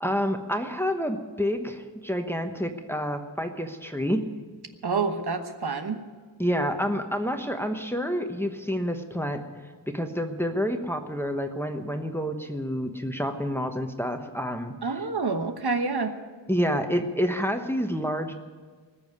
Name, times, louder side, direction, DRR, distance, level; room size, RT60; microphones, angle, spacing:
voice 1, 0.0-4.3 6.4-9.4 9.9-14.7 16.5-18.3, equal, 5° left, 6 dB, 1.1 m, -28 dB
voice 2, 4.8-6.0 14.8-16.1, right 4 dB, 60° right, 7 dB, 1.2 m, -28 dB
19.5 x 7.1 x 9.6 m, 1.5 s
wide cardioid pair, 90°, 43 cm